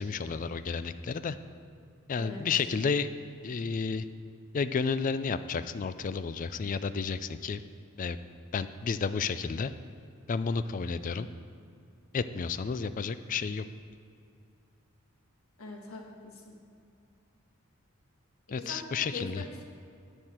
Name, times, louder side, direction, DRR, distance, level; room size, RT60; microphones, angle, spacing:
voice 1, 0.0-1.4 2.1-3.1 3.4-4.0 4.5-7.6 8.0-8.2 8.5-9.7 10.3-11.3 12.1-13.6 18.5-19.4, left 5 dB, 40° left, 13 dB, 0.4 m, -31 dB
voice 2, 15.6-16.5 18.5-18.8 19.1-19.6, left 3 dB, 90° left, 1 dB, 1.5 m, -42 dB
9.8 x 8.4 x 4.4 m, 2.5 s
head